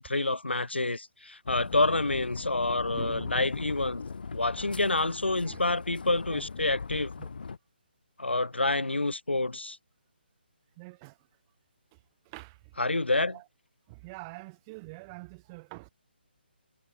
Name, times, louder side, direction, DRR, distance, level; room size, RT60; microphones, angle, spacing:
voice 1, 0.0-4.0 4.3-7.1 8.2-9.8 12.8-13.3, left 2 dB, 85° left, 0.7 m, -28 dB
sound 1, 1.5-7.6, left 5 dB, 60° left, 1.2 m, -39 dB
voice 2, 2.9-3.4 5.4-5.6 6.3-6.4 7.2-7.3 10.8-11.2 11.9-12.0 12.3-12.7 13.3-13.5 13.9-15.9, right 27 dB, 20° right, 5.3 m, -46 dB
figure-of-eight pair, 145°, 6 cm